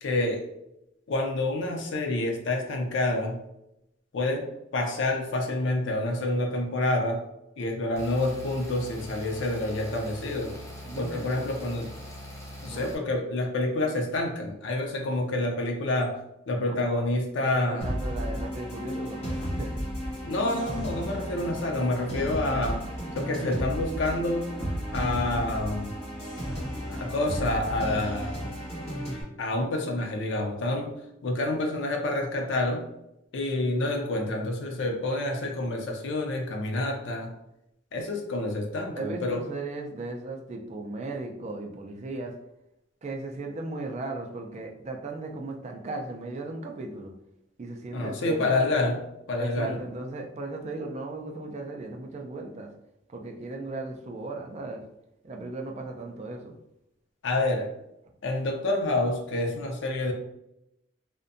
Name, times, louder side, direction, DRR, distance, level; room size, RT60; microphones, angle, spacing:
voice 1, 0.0-0.5 1.1-3.4 4.1-7.2 7.6-10.6 11.0-11.9 12.6-16.2 16.5-17.9 20.2-22.8 23.1-24.5 24.9-25.9 26.9-28.4 29.4-30.9 31.2-32.9 33.3-37.3 37.9-39.4 47.9-49.8 57.2-57.7 58.2-60.1, left 2 dB, 75° left, 2 dB, 0.5 m, -28 dB
sound 1, 8.0-13.0, equal, 15° left, 0.6 m, -42 dB
voice 2, 10.8-11.5 12.6-12.9 16.7-17.1 17.4-19.7 38.9-42.3 43.0-47.1 47.6-48.6 49.4-52.7 53.1-54.8 55.2-56.5, right 2 dB, 35° right, 3 dB, 0.4 m, -36 dB
sound 2, 17.8-29.2, equal, 35° left, 1.3 m, -33 dB
2.6 x 2.1 x 2.5 m, 0.85 s
head